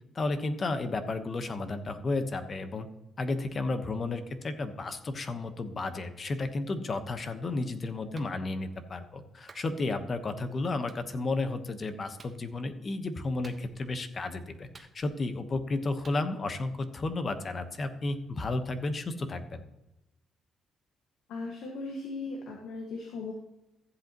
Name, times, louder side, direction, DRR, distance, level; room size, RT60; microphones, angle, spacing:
voice 1, 0.1-2.9 3.2-19.6, left 2 dB, 40° left, 9 dB, 1.1 m, -33 dB
Clapping, 8.2-8.4 9.5-9.7 10.9-11.0 12.2-12.4 13.4-13.9 14.7-15.3 16.0-16.2, right 4 dB, 35° right, 1.2 m, -53 dB
voice 2, 21.3-23.3, left 3 dB, 80° left, 1 dB, 1.6 m, -38 dB
14.5 x 8.0 x 3.0 m, 0.94 s
cardioid pair, 90°, 0 cm